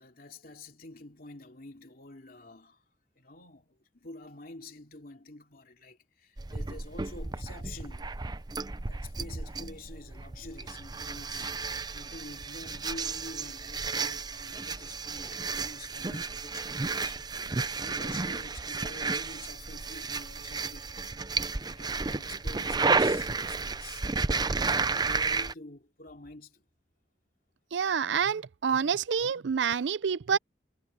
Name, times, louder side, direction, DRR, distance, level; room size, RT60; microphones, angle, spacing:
voice 1, 0.0-2.8 3.2-8.1 8.8-11.5 11.9-17.4 17.7-20.9 21.8-26.6, left 2 dB, 55° left, 3.0 m, -48 dB
sound 1, 6.4-25.5, right 4 dB, 25° right, 0.6 m, -32 dB
voice 2, 27.7-30.4, right 7 dB, 85° right, 0.5 m, -28 dB
head